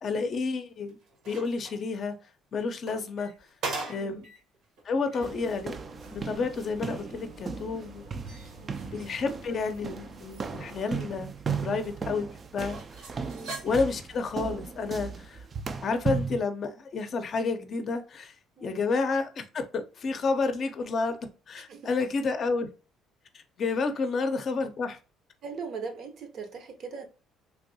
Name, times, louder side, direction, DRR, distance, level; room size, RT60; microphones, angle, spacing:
voice 1, 0.0-1.0 1.3-2.2 2.5-3.3 3.9-4.2 4.8-5.8 6.1-8.1 8.8-12.3 12.5-12.8 13.6-15.4 15.8-21.2 21.5-22.7 23.3-25.0, left 4 dB, 50° left, 0.5 m, -30 dB
sound 1, 0.7-1.8 2.6-4.2 4.6-4.7 5.3-5.4 5.8-6.3 7.8-9.8 10.1-11.4 11.8-11.9 12.7-14.1 14.9-15.1, right 3 dB, 75° right, 1.1 m, -41 dB
sound 2, 3.2-3.4 3.8-4.5 4.8-4.9 5.1-11.4, right 1 dB, 90° right, 1.8 m, -51 dB
voice 2, 3.9-4.3 8.3-8.8 13.2-13.6 15.1-15.2 18.6-18.8 21.7-21.9 25.4-27.1, right 5 dB, 55° right, 0.7 m, -41 dB
sound 3, 5.2-16.4, right 5 dB, 35° right, 0.3 m, -36 dB
3.3 x 2.6 x 2.6 m
cardioid pair, 95°, 0 cm